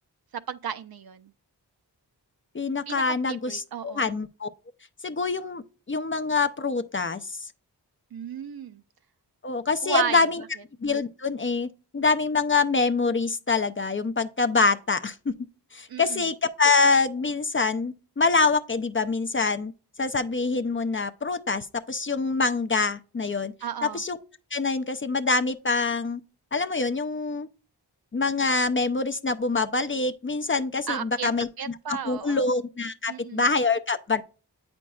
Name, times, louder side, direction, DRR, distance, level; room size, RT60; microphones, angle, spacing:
voice 1, 0.3-1.3 2.9-4.1 8.1-8.8 9.8-10.2 15.9-16.3 23.6-24.0 30.9-31.3 31.6-32.4 33.1-33.4, right 8 dB, 60° right, 0.5 m, -33 dB
voice 2, 2.5-4.5 5.0-5.6 5.9-7.5 9.4-10.4 10.8-11.7 11.9-15.3 15.7-19.7 20.0-23.5 23.8-24.2 24.5-26.2 26.5-27.5 28.1-31.5 31.9-34.2, left 4 dB, 30° left, 0.4 m, -25 dB
8.2 x 5.2 x 2.3 m
wide cardioid pair, 55°, 41 cm